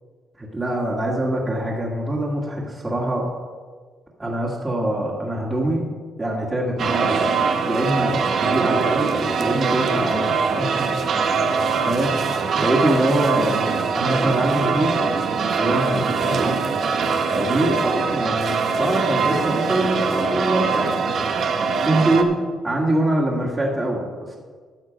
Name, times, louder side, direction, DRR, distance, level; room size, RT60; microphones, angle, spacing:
voice 1, 0.4-3.3 4.2-5.9 6.2-7.3 7.7-12.1 12.5-15.0 15.6-16.7 17.3-20.9 21.8-24.4, right 1 dB, 20° right, -3 dB, 2.0 m, -24 dB
sound 1, 6.8-22.2, right 5 dB, 60° right, 0.9 m, -22 dB
12.5 x 6.3 x 5.3 m, 1.5 s
cardioid pair, 90°, 0 cm